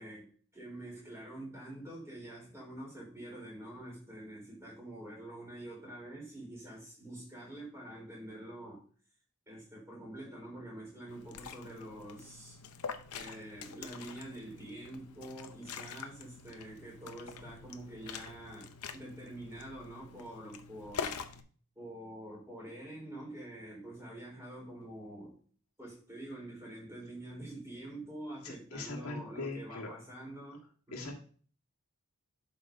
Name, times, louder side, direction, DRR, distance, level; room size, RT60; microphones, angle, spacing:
voice 1, 0.0-8.8 9.5-12.6 13.1-21.2 21.7-25.4 25.8-30.6 30.9-31.2, right 1 dB, 15° right, 4.3 m, -46 dB
Liquid, 11.1-21.4, left 6 dB, 90° left, 0.7 m, -45 dB
voice 2, 28.4-29.9 30.9-31.2, left 3 dB, 75° left, 1.6 m, -41 dB
11.5 x 5.3 x 2.7 m
head